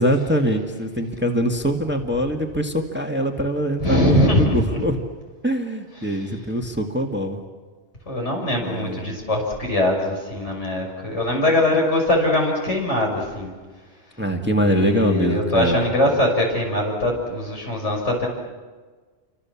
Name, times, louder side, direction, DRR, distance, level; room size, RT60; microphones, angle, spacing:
voice 1, 0.0-5.0 5.4-7.4 8.6-9.2 14.2-15.8, equal, 10° right, 3 dB, 1.8 m, -23 dB
voice 2, 3.8-4.8 6.0-6.3 8.1-13.5 14.4-18.3, left 1 dB, 70° left, 0 dB, 6.9 m, -22 dB
29.0 x 25.0 x 7.2 m, 1.4 s
omnidirectional pair, 1.3 m